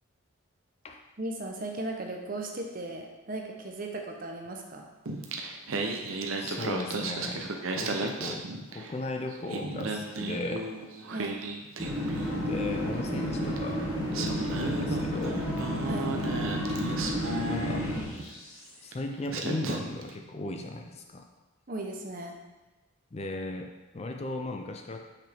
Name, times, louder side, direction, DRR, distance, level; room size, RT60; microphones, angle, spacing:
voice 1, 1.2-4.9 11.1-11.4 15.8-16.1 21.7-22.3, right 2 dB, 40° right, 2 dB, 0.8 m, -37 dB
Singing, 5.1-9.0 9.3-12.5 13.6-13.7 14.1-18.3 18.9-19.0 19.3-20.1, right 3 dB, 75° right, 0.7 m, -35 dB
voice 2, 6.4-10.7 12.4-13.9 14.2-15.5 17.5-17.9 18.8-21.2 23.1-25.0, left 2 dB, 30° left, 3 dB, 0.4 m, -37 dB
sound 1, 11.8-18.0, equal, 10° right, 2.0 m, -31 dB
sound 2, 12.2-18.9, left 1 dB, 80° left, 1.2 m, -43 dB
5.9 x 5.8 x 3.5 m, 1.1 s
head